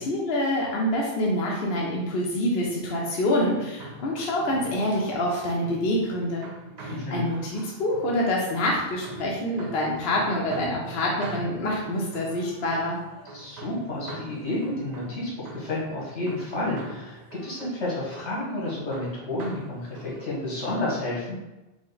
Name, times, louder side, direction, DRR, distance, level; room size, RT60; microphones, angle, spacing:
voice 1, 0.0-6.5 6.8-13.0, left 1 dB, 65° left, -3 dB, 0.9 m, -26 dB
sound 1, 2.5-20.8, right 1 dB, 45° right, 0.6 m, -43 dB
voice 2, 6.9-7.2 13.3-21.3, left 1 dB, 80° left, -5 dB, 1.6 m, -31 dB
5.0 x 2.1 x 3.9 m, 1.0 s
omnidirectional pair, 1.2 m